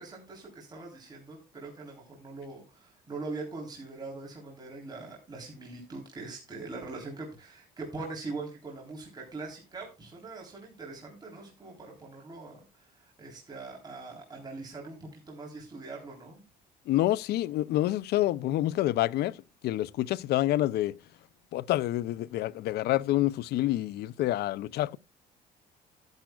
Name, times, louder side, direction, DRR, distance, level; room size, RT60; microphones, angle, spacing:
voice 1, 0.0-16.4, right 3 dB, 25° right, 3.7 m, -42 dB
voice 2, 16.9-19.4 19.6-20.9 21.5-25.0, left 15 dB, 70° left, 0.5 m, -27 dB
11.5 x 10.5 x 2.3 m
cardioid pair, 110°, 17 cm